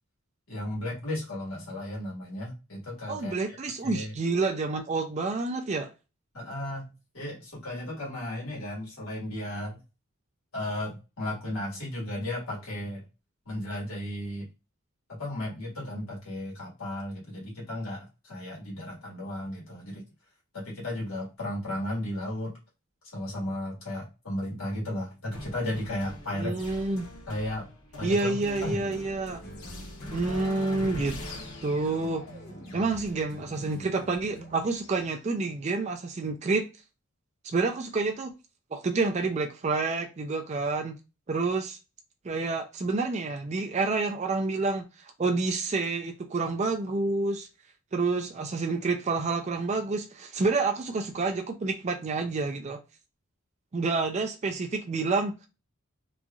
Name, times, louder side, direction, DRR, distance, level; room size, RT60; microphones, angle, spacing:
voice 1, 0.5-3.6 3.8-4.1 6.3-6.9 7.1-9.8 10.5-13.0 13.4-14.5 15.1-20.0 20.5-22.5 23.1-26.6 27.3-27.7 28.0-28.3 28.6-28.9 30.9-31.0, left 1 dB, 70° left, 1.6 m, -34 dB
voice 2, 3.1-5.9 26.4-27.1 28.0-29.4 30.1-31.1 31.6-32.2 32.7-36.7 37.4-38.3 38.7-41.0 41.3-41.8 42.2-44.9 45.2-47.5 47.9-52.8 53.7-55.5, right 3 dB, 30° right, 0.4 m, -28 dB
sound 1, 25.3-35.1, left 1 dB, 90° left, 0.9 m, -43 dB
sound 2, 29.4-34.7, equal, 45° left, 0.7 m, -46 dB
3.1 x 2.5 x 2.3 m
head